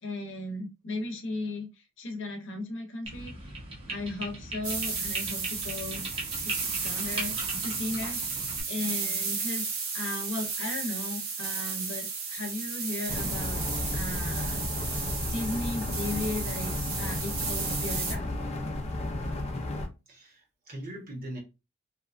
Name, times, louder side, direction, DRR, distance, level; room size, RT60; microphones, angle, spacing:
voice 1, 0.0-3.5 3.9-6.0 6.4-13.6 13.9-14.6 15.3-18.3, left 2 dB, 65° left, 0.8 m, -36 dB
sound 1, 3.1-8.6, right 2 dB, 25° right, 0.8 m, -39 dB
sound 2, 4.6-18.1, right 5 dB, 70° right, 0.7 m, -33 dB
sound 3, 13.1-19.9, left 2 dB, 30° left, 0.5 m, -33 dB
voice 2, 20.1-21.4, right 1 dB, 45° right, 1.1 m, -41 dB
2.9 x 2.3 x 2.5 m
head